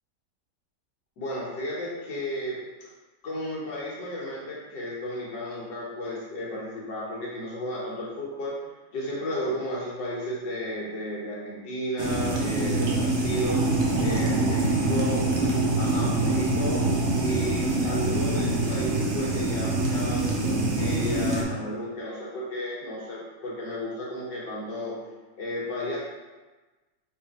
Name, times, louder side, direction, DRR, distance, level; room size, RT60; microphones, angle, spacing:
voice 1, 1.2-2.6 3.2-8.6 8.9-13.6 14.0-16.9 17.2-25.0 25.4-26.0, equal, 85° left, -6 dB, 1.9 m, -33 dB
sound 1, 12.0-21.4, right 2 dB, 55° right, 0.8 m, -25 dB
4.6 x 2.7 x 4.1 m, 1.2 s
omnidirectional pair, 1.9 m